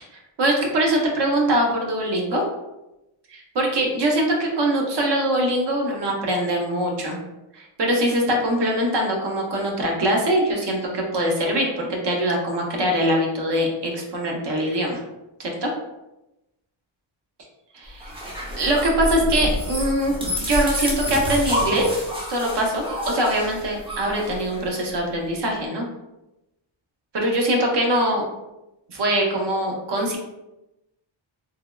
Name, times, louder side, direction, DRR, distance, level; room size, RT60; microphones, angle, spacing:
voice 1, 0.4-2.4 3.3-7.2 7.5-15.0 15.4-15.7 17.7-18.3 18.6-20.1 20.4-21.9 22.3-25.9 27.1-28.2 28.9-30.2, right 1 dB, 55° right, 0 dB, 0.7 m, -23 dB
sound 1, 18.0-24.9, equal, 10° right, 0.5 m, -28 dB
3.4 x 2.2 x 2.2 m, 0.96 s
wide cardioid pair, 150°, 49 cm